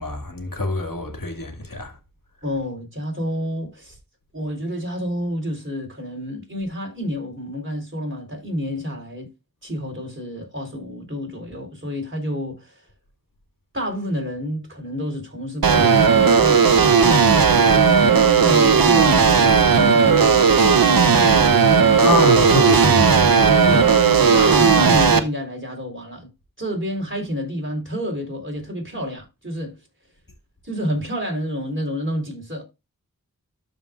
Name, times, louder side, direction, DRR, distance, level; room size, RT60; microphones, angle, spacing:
voice 1, 0.0-1.9 22.0-23.8, left 1 dB, 70° left, 2.1 m, -25 dB
voice 2, 2.4-4.0 4.3-9.3 9.6-12.8 13.7-17.8 18.4-21.5 22.1-22.2 23.1-23.2 23.7-23.9 24.3-26.3 26.6-29.8 30.6-32.6, equal, 35° right, 3.9 m, -29 dB
sound 1, 15.6-25.2, right 5 dB, 85° right, 0.8 m, -15 dB
12.5 x 5.3 x 2.4 m
wide cardioid pair, 45°, 35 cm